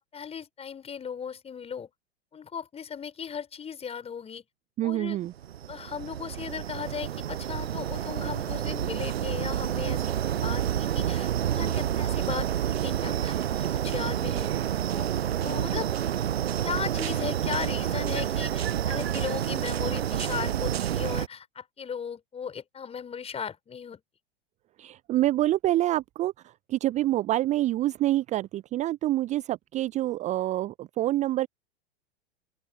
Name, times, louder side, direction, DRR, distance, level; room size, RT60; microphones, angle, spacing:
voice 1, 0.0-1.9 2.3-4.4 4.8-5.2 5.7-14.5 14.9-15.1 15.4-15.9 16.6-24.0, left 7 dB, 20° left, 5.6 m, -37 dB
voice 2, 4.8-5.3 24.8-31.5, right 15 dB, 20° right, 0.6 m, -27 dB
sound 1, 5.4-21.3, right 10 dB, 70° right, 0.7 m, -29 dB
open air
figure-of-eight pair, 95°, 32 cm